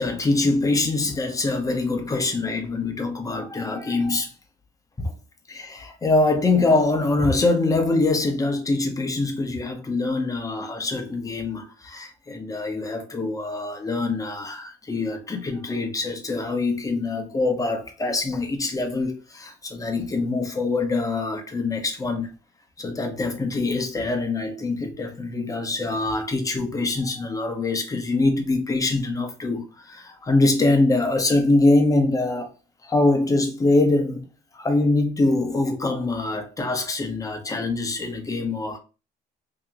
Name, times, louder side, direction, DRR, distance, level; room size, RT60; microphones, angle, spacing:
voice 1, 0.0-4.3 5.0-5.1 5.5-22.3 22.8-32.5 32.8-34.3 34.5-38.8, left 2 dB, 20° left, 0.8 m, -24 dB
2.9 x 2.8 x 3.6 m
cardioid pair, 110°, 17 cm